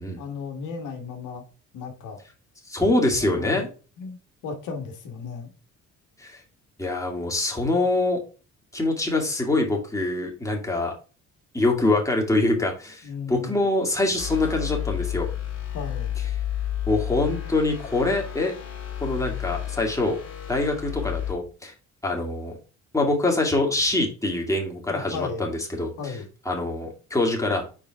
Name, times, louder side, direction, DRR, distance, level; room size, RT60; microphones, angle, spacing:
voice 1, 0.2-1.4 1.7-2.2 3.2-3.6 4.0-5.5 13.0-13.7 15.7-16.1 24.9-25.5 26.0-26.3, left 5 dB, 85° left, 4 dB, 1.6 m, -35 dB
voice 2, 2.7-3.7 6.2-6.4 6.8-8.2 8.7-10.9 11.5-15.3 16.9-18.5 19.0-20.2 20.5-21.7 22.0-22.6 22.9-26.2 26.5-27.6, left 2 dB, 10° left, 0 dB, 2.3 m, -24 dB
sound 1, 14.2-21.3, left 11 dB, 55° left, 2.3 m, -31 dB
5.0 x 4.8 x 4.7 m, 0.35 s
cardioid pair, 90°, 30 cm